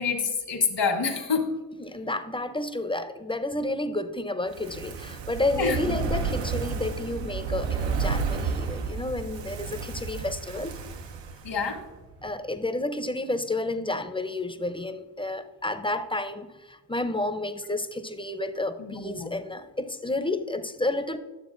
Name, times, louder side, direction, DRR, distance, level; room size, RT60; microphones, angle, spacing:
voice 1, 0.0-1.4 5.6-6.0 11.4-11.8 18.8-19.3, left 5 dB, 80° left, 3 dB, 1.3 m, -27 dB
voice 2, 1.8-10.7 12.2-21.2, left 2 dB, 15° left, 10 dB, 0.5 m, -31 dB
Fire, 4.5-11.8 12.1-12.2, right 5 dB, 90° right, 0.6 m, -31 dB
11.0 x 6.9 x 2.5 m, 1.2 s
cardioid pair, 55°, 42 cm